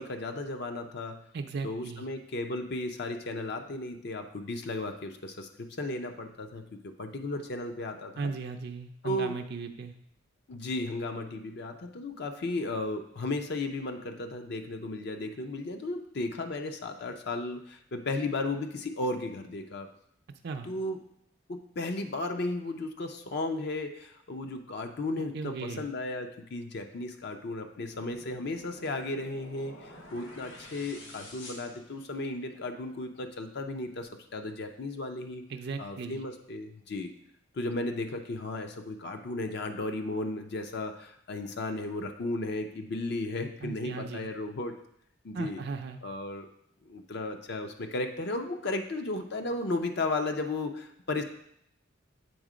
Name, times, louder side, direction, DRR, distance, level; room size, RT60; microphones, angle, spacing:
voice 1, 0.0-1.2 1.6-8.3 9.0-9.4 10.5-19.9 20.6-21.0 21.5-35.5 35.8-37.1 37.5-44.7 45.2-45.6 46.0-46.5 46.9-51.2, left 2 dB, 60° left, 5 dB, 0.6 m, -35 dB
voice 2, 1.3-2.1 8.2-10.0 20.4-20.7 25.3-25.9 35.5-36.2 43.6-44.3 45.3-46.0, right 4 dB, 55° right, 6 dB, 0.5 m, -37 dB
sound 1, 27.9-32.5, left 1 dB, 90° left, 1.5 m, -50 dB
7.8 x 3.6 x 5.0 m, 0.72 s
head